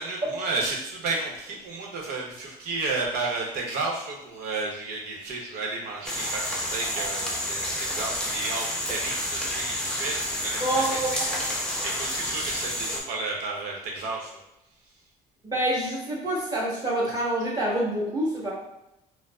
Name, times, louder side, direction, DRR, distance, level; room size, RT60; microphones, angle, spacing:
voice 1, 0.0-14.4, right 3 dB, 80° right, -1 dB, 0.9 m, -32 dB
sound 1, 6.0-13.0, left 1 dB, 5° left, 0.6 m, -30 dB
voice 2, 10.6-11.4 15.4-18.5, right 1 dB, 25° right, -6 dB, 1.4 m, -27 dB
4.3 x 2.1 x 2.4 m, 0.87 s
cardioid pair, 110°, 16 cm